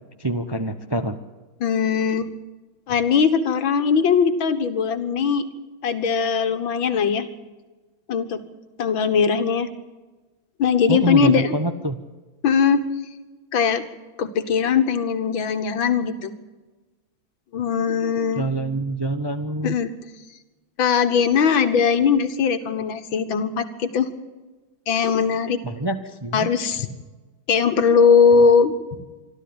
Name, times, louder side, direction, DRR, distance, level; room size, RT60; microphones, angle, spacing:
voice 1, 0.2-1.2 10.9-12.0 18.3-19.7 25.6-26.5, right 2 dB, 20° right, 8 dB, 0.7 m, -25 dB
voice 2, 1.6-2.3 2.9-5.4 5.8-7.3 8.1-8.4 8.8-9.7 10.6-11.5 12.4-12.8 13.5-13.8 14.2-16.3 17.5-18.4 19.6-19.9 20.8-24.1 24.9-25.6 26.3-26.9 27.5-28.7, left 6 dB, 80° left, 9 dB, 2.3 m, -20 dB
26.0 x 13.0 x 8.8 m, 1.2 s
omnidirectional pair, 2.1 m